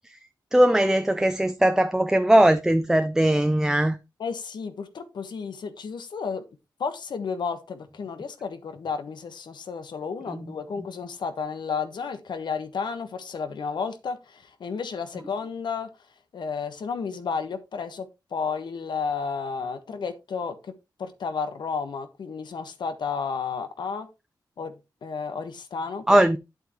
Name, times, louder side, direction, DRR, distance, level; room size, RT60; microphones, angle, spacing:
voice 1, 0.5-4.0 10.3-10.5 26.1-26.4, right 1 dB, 5° right, 0.5 m, -20 dB
voice 2, 4.2-6.4 6.8-15.9 16.3-18.1 18.3-20.7 21.0-24.1 24.6-24.7 25.0-26.3, left 5 dB, 85° left, 1.3 m, -32 dB
9.4 x 8.0 x 3.0 m
wide cardioid pair, 160°, 7 cm